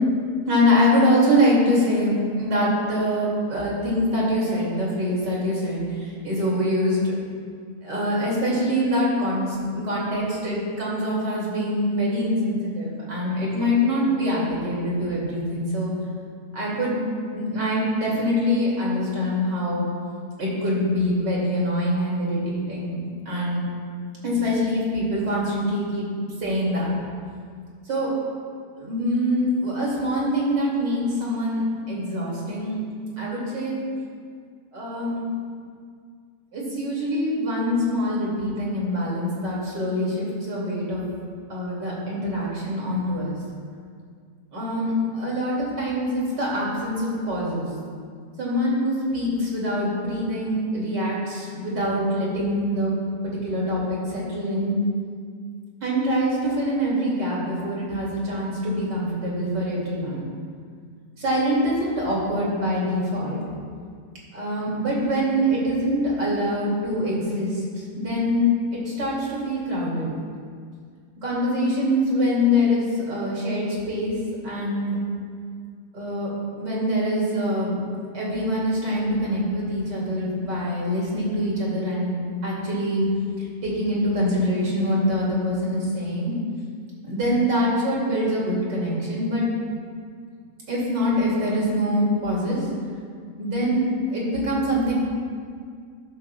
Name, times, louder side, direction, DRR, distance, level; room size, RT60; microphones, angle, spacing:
voice 1, 0.5-7.0 7.8-15.9 16.5-17.0 17.3-19.9 20.4-23.0 23.3-23.6 24.2-26.1 26.4-26.9 27.9-28.1 28.8-32.8 33.2-33.8 34.7-35.3 36.5-41.0 41.5-43.3 44.5-47.7 48.4-52.9 53.2-54.8 55.8-60.3 61.2-63.4 64.3-70.1 71.2-74.2 74.4-75.0 75.9-77.7 78.1-83.1 83.6-86.3 87.0-89.4 90.7-92.7 93.4-94.9, equal, 80° right, -5 dB, 3.2 m, -24 dB
12.5 x 12.0 x 2.4 m, 2.1 s
omnidirectional pair, 1.8 m